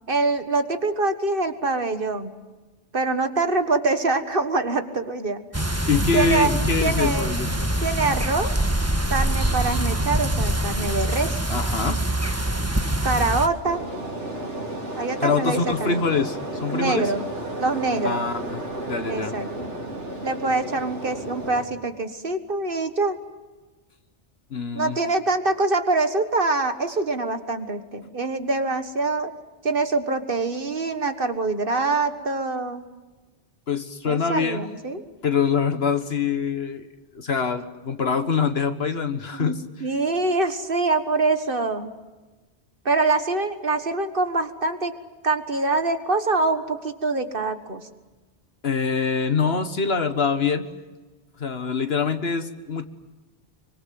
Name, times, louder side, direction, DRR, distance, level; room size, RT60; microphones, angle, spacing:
voice 1, 0.1-2.3 2.9-5.4 6.1-6.5 6.8-7.3 7.8-8.5 9.1-11.4 13.0-13.8 15.0-16.0 16.7-17.2 17.6-18.3 19.1-19.5 20.2-23.2 24.7-29.3 29.6-32.8 34.0-35.1 39.3-39.5 39.8-41.9 42.8-44.9 45.2-47.9, right 3 dB, 50° right, 8 dB, 1.8 m, -24 dB
sound 1, 5.5-13.5, right 1 dB, 15° right, 1.5 m, -24 dB
voice 2, 5.9-7.5 11.5-12.0 15.2-17.1 18.0-19.3 24.5-25.0 33.7-34.6 35.2-36.9 37.1-39.6 48.6-50.7 51.4-52.8, left 5 dB, 60° left, 9 dB, 1.7 m, -24 dB
sound 2, 13.6-21.6, right 1 dB, 90° right, 4.0 m, -33 dB
25.5 x 24.5 x 7.8 m, 1.2 s
omnidirectional pair, 1.2 m